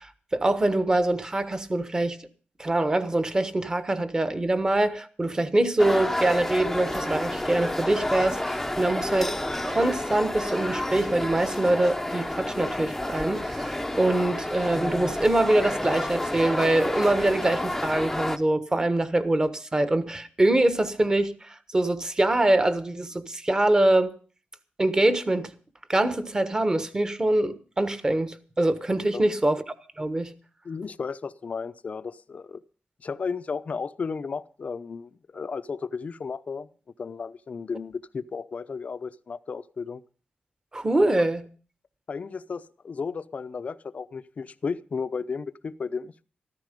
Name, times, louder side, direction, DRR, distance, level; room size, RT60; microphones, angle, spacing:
voice 1, 0.0-2.2 2.6-9.3 9.6-24.1 24.8-25.5 25.9-29.6 30.0-30.3 40.7-41.5, right 1 dB, 20° right, 1.3 m, -24 dB
sound 1, 5.8-18.4, left 1 dB, 5° left, 0.8 m, -30 dB
voice 2, 30.6-32.6 33.0-36.7 37.0-40.0 42.1-46.2, left 5 dB, 40° left, 0.7 m, -34 dB
14.0 x 14.0 x 5.2 m
wide cardioid pair, 140°, 4 cm